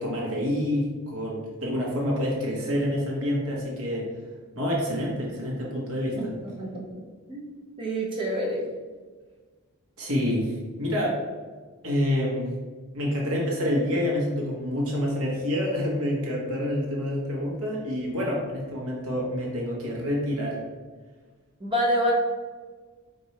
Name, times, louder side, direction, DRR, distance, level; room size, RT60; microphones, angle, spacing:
voice 1, 0.0-4.1 4.5-6.3 10.0-11.2 11.8-12.5 12.9-20.6, left 1 dB, 75° right, -3 dB, 1.2 m, -27 dB
voice 2, 7.8-8.7 21.6-22.1, equal, 25° right, -3 dB, 0.9 m, -27 dB
4.6 x 2.6 x 4.1 m, 1.4 s
head